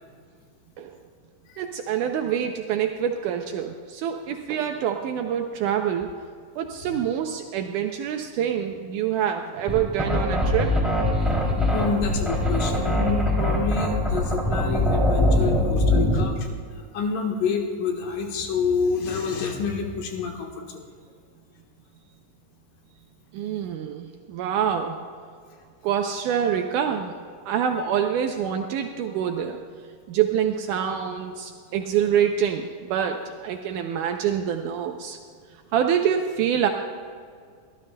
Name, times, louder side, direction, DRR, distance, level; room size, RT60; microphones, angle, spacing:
voice 1, 1.6-6.1 6.6-10.8 23.3-25.0 25.8-27.1 27.5-29.6 30.1-35.2 35.7-36.7, right 8 dB, 80° right, 4 dB, 2.0 m, -26 dB
sound 1, 9.7-16.3, left 1 dB, ahead, 2.1 m, -22 dB
voice 2, 11.2-16.5 16.9-20.9, left 5 dB, 75° left, 2 dB, 2.9 m, -28 dB
25.5 x 13.0 x 2.2 m, 2.1 s
omnidirectional pair, 3.8 m